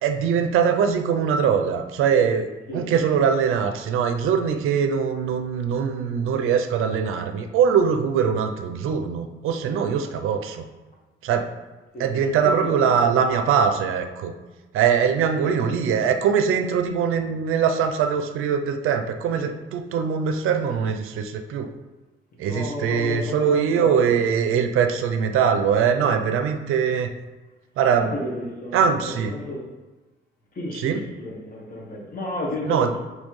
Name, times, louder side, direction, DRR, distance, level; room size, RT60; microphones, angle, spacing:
voice 1, 0.0-2.5 2.7-10.6 11.2-11.5 12.0-14.3 14.7-21.7 22.4-27.1 27.8-28.1 28.7-29.3 30.7-31.0 32.7-32.9, right 7 dB, 80° right, 7 dB, 0.4 m, -22 dB
voice 2, 2.7-3.0 11.9-12.1 12.4-13.2 15.3-15.4 19.3-19.5 22.4-24.3 26.0-26.2 28.0-29.7 30.5-33.0, left 1 dB, 45° left, -3 dB, 1.3 m, -33 dB
4.3 x 3.2 x 3.1 m, 1.2 s
cardioid pair, 105°, 21 cm